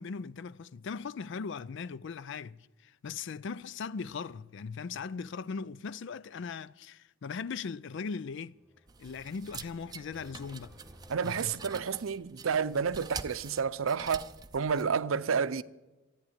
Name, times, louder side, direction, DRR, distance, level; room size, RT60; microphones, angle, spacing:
voice 1, 0.0-8.6 9.0-10.8 11.2-11.6, left 5 dB, 60° left, 0.4 m, -39 dB
sound 1, 8.2-12.5, equal, 5° left, 2.4 m, -58 dB
sound 2, 8.9-14.8, right 5 dB, 20° right, 0.5 m, -46 dB
voice 2, 11.1-15.6, right 6 dB, 85° right, 0.6 m, -30 dB
13.5 x 9.3 x 9.8 m
head